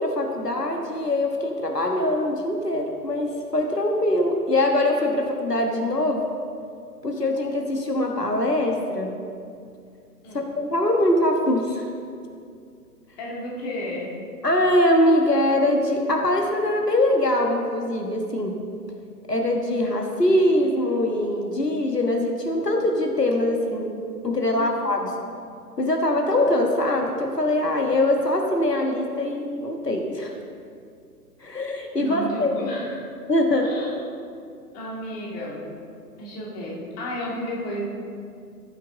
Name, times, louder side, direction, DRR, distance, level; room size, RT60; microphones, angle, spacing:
voice 1, 0.0-6.2 7.0-9.1 10.3-11.9 14.4-18.5 19.3-23.9 24.2-25.1 25.8-30.4 31.4-32.5 33.3-33.7, left 1 dB, 85° left, 2 dB, 1.5 m, -22 dB
voice 2, 13.2-14.1 24.5-24.7 32.0-33.0 33.6-33.9 34.7-35.7 36.2-38.0, equal, 25° left, -4 dB, 2.2 m, -32 dB
14.5 x 8.9 x 3.8 m, 2.4 s
figure-of-eight pair, 125°, 47 cm